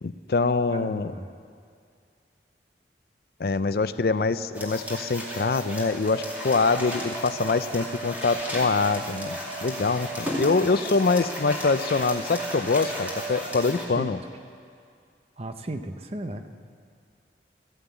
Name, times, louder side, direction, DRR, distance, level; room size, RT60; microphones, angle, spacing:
voice 1, 0.0-1.1 3.4-14.2, left 4 dB, 55° left, 13 dB, 0.5 m, -24 dB
voice 2, 0.7-1.3 14.0-14.1 15.4-16.5, right 1 dB, 35° right, 8 dB, 0.7 m, -35 dB
sound 1, 4.5-13.8, right 1 dB, 10° right, 2.4 m, -34 dB
14.5 x 11.5 x 8.3 m, 2.3 s
head